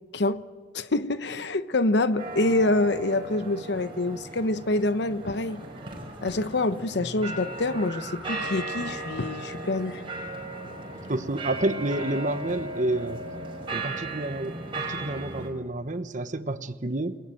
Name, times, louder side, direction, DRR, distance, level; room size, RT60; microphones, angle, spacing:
voice 1, 0.7-5.6 6.2-10.0, left 2 dB, 65° left, 0.9 m, -26 dB
sound 1, 2.2-15.5, right 2 dB, 30° right, 6.1 m, -36 dB
voice 2, 11.1-13.2 13.7-17.2, right 2 dB, 45° right, 1.1 m, -29 dB
29.0 x 19.5 x 9.2 m
head